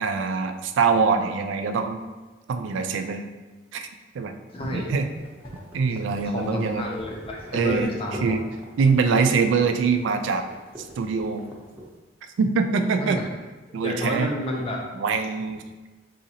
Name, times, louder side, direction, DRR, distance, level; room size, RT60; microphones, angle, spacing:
voice 1, 0.0-2.0 2.5-3.3 3.7-3.9 4.1-4.3 4.7-5.1 5.7-6.9 7.5-7.9 8.2-8.4 8.8-10.4 10.8-11.5 12.4-13.2 13.7-14.3 14.9-15.6, right 5 dB, 80° right, 7 dB, 0.3 m, -23 dB
voice 2, 4.5-5.0 6.3-8.4 13.0-13.2 13.8-14.8, left 1 dB, 30° left, -1 dB, 0.4 m, -30 dB
sound 1, 4.5-11.9, equal, 10° right, 0.6 m, -43 dB
4.0 x 2.5 x 2.7 m, 1.2 s
head